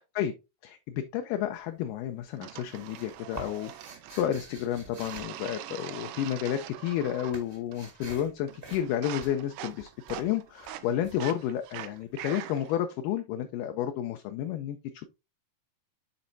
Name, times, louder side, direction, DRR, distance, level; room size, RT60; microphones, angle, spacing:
voice 1, 0.6-3.7 4.1-15.1, left 10 dB, 80° left, 2.1 m, -31 dB
sound 1, 1.4-1.9 2.2-6.3 6.5-12.1, right 2 dB, 30° right, 1.0 m, -48 dB
sound 2, 2.4-4.5 5.0-7.4 7.7-8.2 8.5-12.8, right 14 dB, 80° right, 1.9 m, -43 dB
11.5 x 4.3 x 2.6 m
omnidirectional pair, 4.2 m